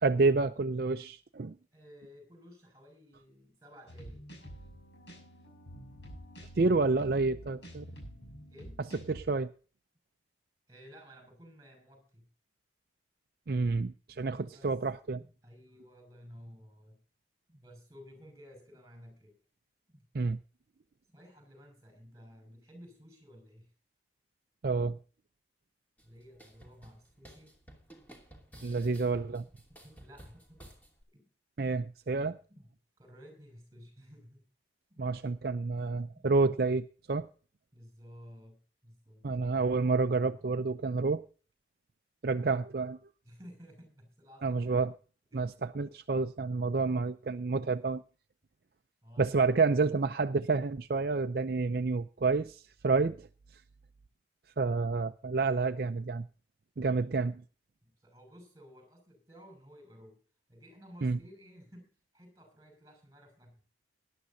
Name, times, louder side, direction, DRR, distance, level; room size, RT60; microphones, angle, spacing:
voice 1, 0.0-1.5 6.6-7.8 9.1-9.5 13.5-15.2 20.1-20.4 24.6-25.0 28.6-29.4 31.6-32.4 35.0-37.3 39.2-41.2 42.2-43.0 44.4-44.9 45.3-48.0 49.2-53.3 54.6-56.3 56.8-57.4 61.0-61.2, right 3 dB, 55° right, 0.5 m, -29 dB
voice 2, 1.7-4.3 8.5-8.8 10.7-12.3 14.5-14.8 15.1-17.0 17.5-19.4 19.9-20.1 21.1-23.7 26.0-27.5 28.5-30.7 31.1-31.3 31.6-32.1 32.5-34.4 34.9-35.3 36.1-36.3 37.7-39.3 42.2-42.6 43.2-44.9 45.3-45.6 49.0-49.4 57.3-57.4 57.8-60.2 60.5-63.6, equal, 20° right, 6.0 m, -54 dB
sound 1, 3.9-9.2, equal, 75° left, 6.7 m, -48 dB
sound 2, 26.0-31.0, right 1 dB, 10° left, 2.7 m, -55 dB
19.0 x 11.5 x 2.7 m
head